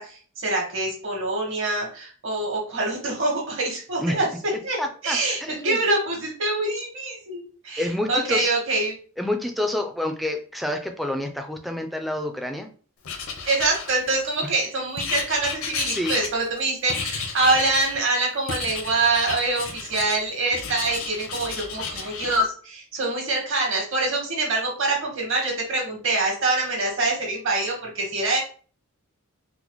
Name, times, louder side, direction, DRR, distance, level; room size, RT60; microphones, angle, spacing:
voice 1, 0.0-4.3 4.6-4.8 5.0-8.9 13.4-28.4, right 2 dB, 60° right, 0 dB, 1.3 m, -25 dB
voice 2, 4.8-5.8 7.8-8.5 9.2-12.7 15.9-16.2, left 1 dB, ahead, 4 dB, 0.3 m, -28 dB
Writing, 13.0-14.4 15.0-16.6 16.9-18.0 18.5-20.2 20.5-22.4, left 5 dB, 70° left, 0.6 m, -32 dB
4.0 x 2.0 x 3.0 m, 0.41 s
head